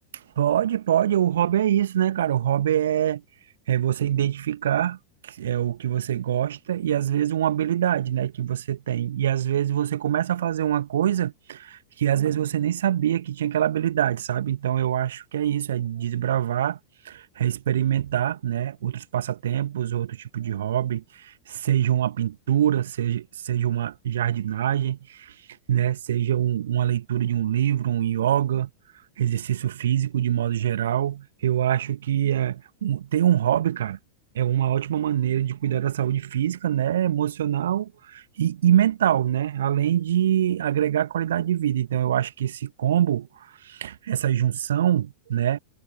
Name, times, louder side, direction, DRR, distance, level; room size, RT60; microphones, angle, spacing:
voice 1, 0.4-3.2 3.7-5.0 5.2-16.8 17.1-25.4 25.7-28.7 29.2-34.0 34.4-45.6, right 11 dB, 60° right, 1.8 m, -24 dB
figure-of-eight pair, 90°, 0 cm